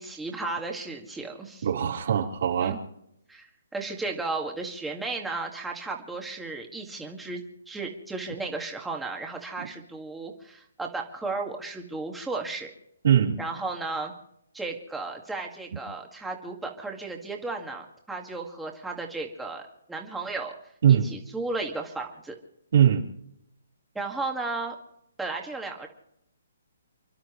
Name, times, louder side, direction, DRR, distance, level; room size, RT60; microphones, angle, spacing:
voice 1, 0.0-1.7 2.6-2.8 3.3-3.5 3.7-12.7 13.4-14.1 14.5-20.5 20.9-22.4 24.0-24.8 25.2-25.9, right 3 dB, 5° right, 1 dB, 1.9 m, -34 dB
voice 2, 1.6-2.8 9.6-9.7 13.0-13.4 20.8-21.1 22.7-23.0, right 9 dB, 55° right, -1 dB, 3.7 m, -21 dB
30.0 x 12.0 x 3.2 m, 0.79 s
hypercardioid pair, 170°, 0 cm